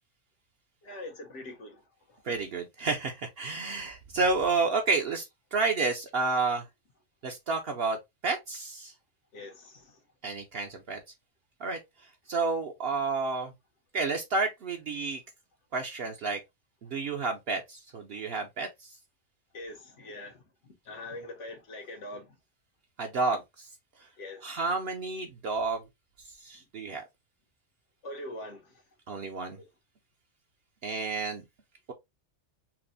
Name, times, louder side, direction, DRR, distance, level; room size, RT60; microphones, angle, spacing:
voice 1, 0.8-1.8 9.3-10.0 19.5-22.3 24.2-24.5 28.0-28.7, left 1 dB, 85° left, 1.3 m, -43 dB
voice 2, 2.2-6.6 7.2-8.9 10.2-11.0 11.6-13.5 13.9-15.2 15.7-16.4 16.8-18.9 23.0-23.7 24.0-24.1 24.4-25.8 26.3-27.0 29.1-29.6 30.8-31.4, right 3 dB, 65° right, 0.8 m, -30 dB
5.8 x 2.1 x 2.6 m
omnidirectional pair, 1.2 m